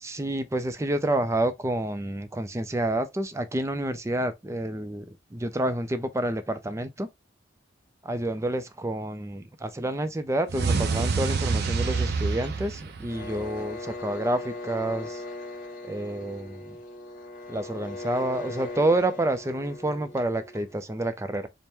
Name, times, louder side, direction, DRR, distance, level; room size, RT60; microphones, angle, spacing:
voice 1, 0.0-5.1 5.3-7.1 8.0-15.2 15.8-16.8 17.5-21.5, right 1 dB, 15° right, 0.4 m, -29 dB
sound 1, 10.5-13.6, right 4 dB, 60° right, 0.6 m, -27 dB
sound 2, 13.1-20.8, left 2 dB, 45° left, 1.2 m, -39 dB
4.4 x 2.1 x 3.3 m
head